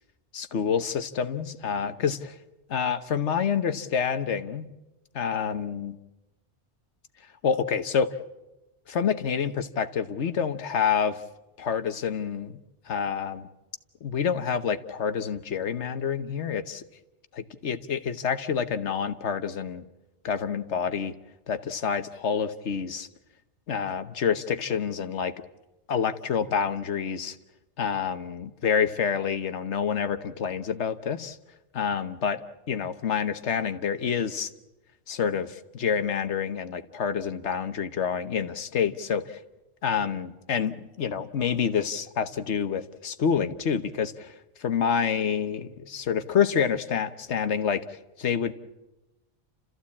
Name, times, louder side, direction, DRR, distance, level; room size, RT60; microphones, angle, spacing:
voice 1, 0.3-2.4 2.7-4.7 5.1-6.0 7.4-8.1 8.9-11.2 11.6-12.6 12.9-13.5 14.0-16.8 17.3-19.8 20.2-21.1 21.5-23.1 23.7-25.3 25.9-27.4 27.8-31.4 31.7-32.4 32.7-34.5 35.1-39.4 39.8-44.3 44.6-48.5, left 7 dB, 85° left, 10 dB, 1.3 m, -28 dB
29.5 x 14.5 x 8.5 m, 1.0 s
omnidirectional pair, 1.2 m